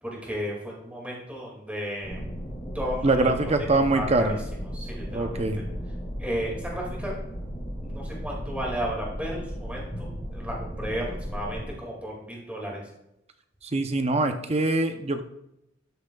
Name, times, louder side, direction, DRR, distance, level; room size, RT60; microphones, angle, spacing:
voice 1, 0.0-2.2 2.7-3.3 3.7-4.4 4.7-5.4 6.2-7.2 7.8-12.8, equal, 5° right, -3 dB, 2.2 m, -34 dB
sound 1, 2.0-11.7, equal, 20° left, 2.5 m, -35 dB
voice 2, 3.0-4.4 5.1-5.6 13.6-15.2, right 2 dB, 35° right, 8 dB, 0.7 m, -24 dB
13.0 x 7.1 x 2.3 m, 0.83 s
head